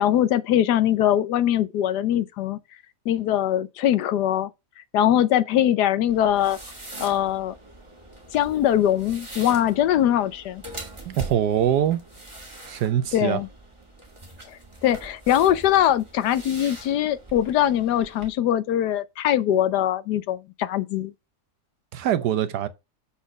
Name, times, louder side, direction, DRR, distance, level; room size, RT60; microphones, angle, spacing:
voice 1, 0.0-2.6 3.1-4.5 4.9-6.6 7.0-7.5 8.3-10.6 13.1-13.5 14.5-21.1, left 11 dB, 80° left, 1.3 m, -22 dB
sound 1, 6.1-18.3, right 2 dB, 15° right, 2.1 m, -42 dB
voice 2, 11.1-12.0 12.7-13.4 21.9-22.7, right 10 dB, 75° right, 1.3 m, -23 dB
7.1 x 4.2 x 6.2 m
omnidirectional pair, 1.7 m